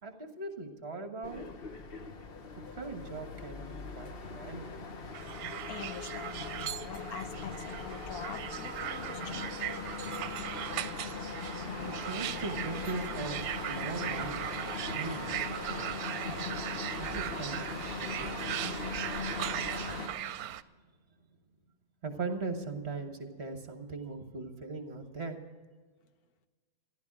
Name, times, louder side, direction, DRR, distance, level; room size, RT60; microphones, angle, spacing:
voice 1, 0.0-1.5 2.7-4.8 12.0-14.5 14.8-15.9 17.0-19.1 22.0-25.4, right 3 dB, 45° right, 5 dB, 1.7 m, -40 dB
sound 1, 1.2-20.1, left 4 dB, 45° left, 1.1 m, -40 dB
sound 2, 5.1-20.6, right 12 dB, 85° right, 1.1 m, -39 dB
voice 2, 5.7-9.8, left 7 dB, 85° left, 10 dB, 1.4 m, -45 dB
14.5 x 12.0 x 6.1 m, 1.4 s
omnidirectional pair, 1.5 m